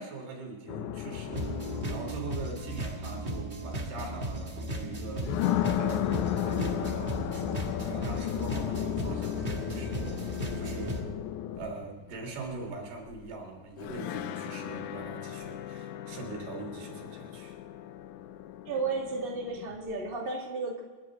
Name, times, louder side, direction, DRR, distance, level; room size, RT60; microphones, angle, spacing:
voice 1, 0.0-11.2 11.5-17.6, right 3 dB, 90° right, 1 dB, 5.2 m, -42 dB
sound 1, 0.7-3.5 4.4-4.5 5.1-13.3 13.8-20.1, left 12 dB, 80° left, 1.8 m, -35 dB
sound 2, 1.3-11.0, right 1 dB, 55° right, 0.6 m, -36 dB
voice 2, 18.7-20.8, right 3 dB, 20° right, -1 dB, 1.9 m, -33 dB
29.0 x 11.5 x 3.9 m, 1.3 s
omnidirectional pair, 4.3 m